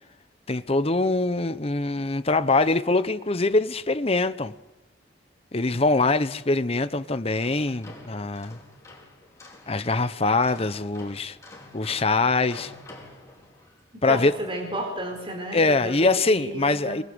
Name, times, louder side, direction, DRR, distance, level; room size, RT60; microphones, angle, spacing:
voice 1, 0.5-4.5 5.5-8.6 9.7-11.4 11.7-12.7 14.0-14.3 15.5-17.0, left 3 dB, 35° left, 0.9 m, -23 dB
sound 1, 7.2-13.9, left 2 dB, 15° left, 5.0 m, -47 dB
voice 2, 14.1-17.0, right 1 dB, 30° right, 4.5 m, -32 dB
24.5 x 23.0 x 8.0 m
head